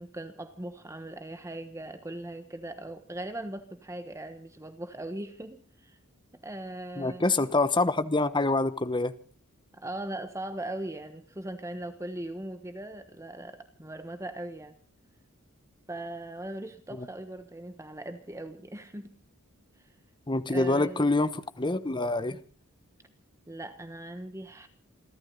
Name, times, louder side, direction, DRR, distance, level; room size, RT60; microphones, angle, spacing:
voice 1, 0.0-6.0 6.4-7.5 9.7-14.8 15.9-19.1 20.5-21.1 23.5-24.7, right 1 dB, 15° right, 1.2 m, -39 dB
voice 2, 7.0-9.1 17.0-17.1 20.3-22.4, left 2 dB, 20° left, 1.0 m, -26 dB
28.5 x 13.0 x 3.9 m
head